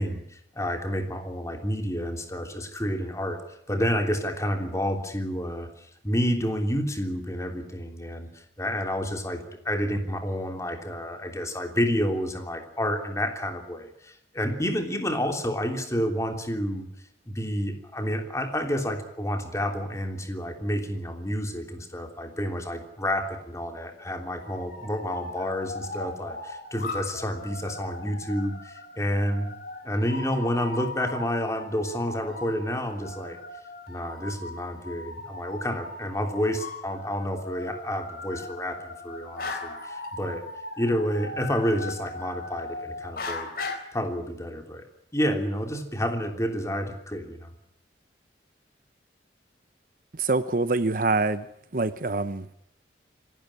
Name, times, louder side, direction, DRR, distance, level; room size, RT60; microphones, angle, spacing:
voice 1, 0.0-16.9 17.3-29.5 29.8-33.4 33.9-40.4 40.8-43.5 43.9-44.8 45.1-47.5, equal, 15° left, 5 dB, 3.2 m, -29 dB
sound 1, 24.4-43.8, left 2 dB, 55° left, 4.1 m, -38 dB
voice 2, 50.1-51.5 51.7-52.5, right 3 dB, 50° right, 13 dB, 0.9 m, -25 dB
26.0 x 12.5 x 9.9 m, 0.74 s
head